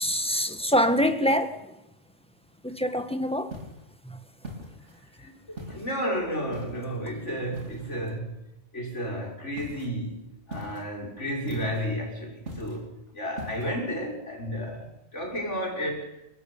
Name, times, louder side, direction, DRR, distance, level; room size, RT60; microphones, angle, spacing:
voice 1, 0.0-1.6 2.6-3.6 4.1-4.2, equal, 5° left, 1.9 m, -25 dB
sound 1, 3.5-3.9 4.4-5.0 5.6-6.0 6.5-6.9 7.5-8.0 9.6-9.9 10.5-10.9 11.5-11.9 12.5-12.9 13.4-13.7, equal, 85° right, 4.4 m, -41 dB
voice 2, 5.1-8.4 8.7-16.2, equal, 85° left, 6.7 m, -32 dB
30.0 x 13.5 x 8.8 m
omnidirectional pair, 1.2 m